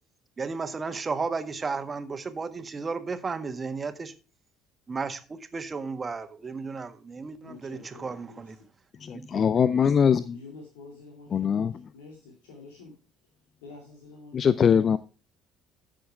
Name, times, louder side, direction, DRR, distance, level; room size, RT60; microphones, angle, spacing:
voice 1, 0.4-4.1 4.9-5.2 5.5-8.6 9.1-9.4, right 4 dB, 30° right, 1.6 m, -33 dB
voice 2, 7.4-8.7 10.3-12.9 13.6-14.5 14.8-14.9, left 3 dB, 70° left, 2.3 m, -48 dB
voice 3, 9.0-10.4 11.3-11.9 14.3-15.0, left 7 dB, 40° left, 0.5 m, -22 dB
14.0 x 6.5 x 3.5 m
figure-of-eight pair, 55°, 0 cm